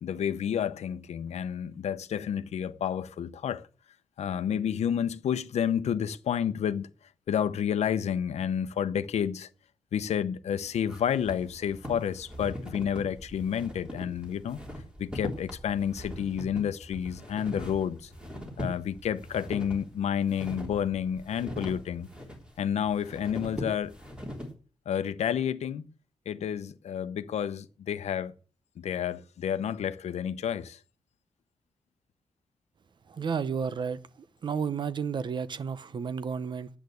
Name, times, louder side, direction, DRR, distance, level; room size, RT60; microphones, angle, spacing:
voice 1, 0.0-3.7 4.2-6.9 7.3-9.5 9.9-14.6 15.0-18.1 18.6-22.1 22.6-23.9 24.9-25.9 26.3-28.3 28.8-30.8, left 8 dB, 85° left, 0.9 m, -30 dB
sound 1, 10.5-24.5, equal, 10° right, 3.7 m, -41 dB
voice 2, 33.1-34.0 34.4-36.7, right 6 dB, 45° right, 0.8 m, -31 dB
10.5 x 8.2 x 7.9 m
wide cardioid pair, 150°, 11 cm